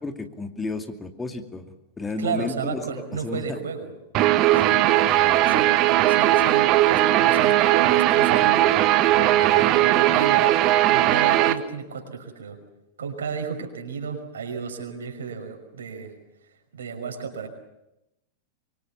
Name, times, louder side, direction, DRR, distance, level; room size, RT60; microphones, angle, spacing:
voice 1, 0.0-1.7 2.0-3.6 5.1-5.5 9.4-9.7, left 3 dB, 15° left, 6 dB, 2.4 m, -33 dB
voice 2, 2.2-3.9 4.5-4.9 5.4-8.7 9.5-10.6 10.9-12.6 13.0-16.1 16.7-17.5, right 6 dB, 65° right, 5 dB, 5.9 m, -33 dB
Guitar, 4.1-11.5, right 14 dB, 40° right, 1.6 m, -18 dB
25.5 x 25.0 x 7.2 m, 0.88 s
figure-of-eight pair, 90°, 0 cm